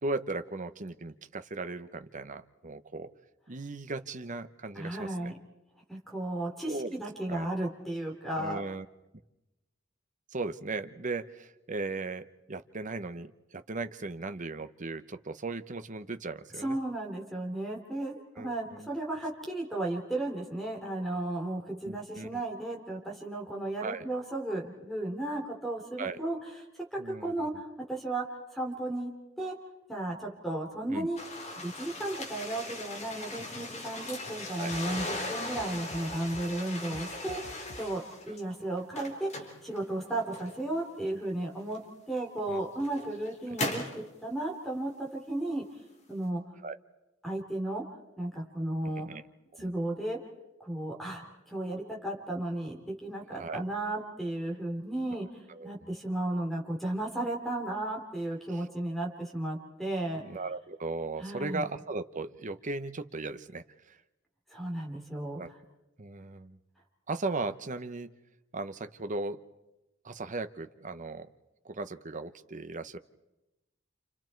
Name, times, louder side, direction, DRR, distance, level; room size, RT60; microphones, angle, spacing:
voice 1, 0.0-3.1 3.5-5.3 6.7-7.0 7.3-7.5 8.3-8.9 10.3-16.8 18.4-18.9 21.8-22.4 23.8-24.0 26.0-26.2 27.0-27.5 30.9-31.1 34.6-34.7 37.1-37.2 42.5-42.6 46.6-46.8 48.8-49.2 49.5-49.7 53.4-53.6 55.1-55.2 55.5-55.7 58.5-58.7 60.2-64.0 65.4-65.5 66.0-66.6 67.1-68.1 68.5-69.4 70.0-71.3 71.6-73.0, right 3 dB, 40° right, 9 dB, 0.9 m, -37 dB
voice 2, 4.8-5.3 5.9-8.6 16.6-26.4 26.7-29.1 29.4-29.6 29.9-31.2 31.6-41.8 42.1-45.6 46.1-46.4 47.2-47.8 48.2-49.1 49.6-50.2 50.6-60.2 61.2-61.6 64.5-65.4, right 1 dB, ahead, 0 dB, 3.8 m, -34 dB
sound 1, 31.2-38.4 38.8-40.8 41.7-41.8 42.5-44.0, left 2 dB, 35° left, 3.9 m, -39 dB
sound 2, 34.7-35.1 35.5-36.5 36.8-37.9, equal, 85° left, 6.0 m, -49 dB
29.0 x 29.0 x 4.6 m, 0.98 s
head